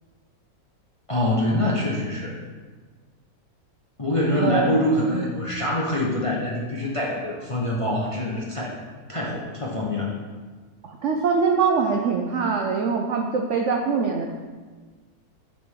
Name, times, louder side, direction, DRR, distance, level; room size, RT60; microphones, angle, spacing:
voice 1, 1.1-2.3 4.0-8.7 9.1-10.1, left 1 dB, 30° left, -5 dB, 0.7 m, -25 dB
voice 2, 4.3-4.7 5.1-5.4 10.8-14.3, right 5 dB, 80° right, 2 dB, 0.6 m, -23 dB
9.4 x 4.2 x 3.6 m, 1.4 s
omnidirectional pair, 1.9 m